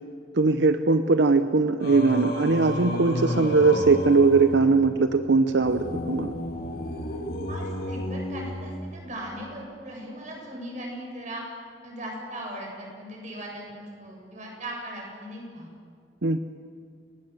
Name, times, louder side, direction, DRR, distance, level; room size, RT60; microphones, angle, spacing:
voice 1, 0.3-6.3 16.2-16.4, right 3 dB, 85° right, 9 dB, 0.8 m, -20 dB
Singing, 1.8-9.2, left 1 dB, 55° left, 2.6 m, -32 dB
voice 2, 7.5-11.4 11.8-15.7, right 1 dB, 45° right, -1 dB, 7.9 m, -38 dB
30.0 x 19.5 x 7.9 m, 2.2 s
head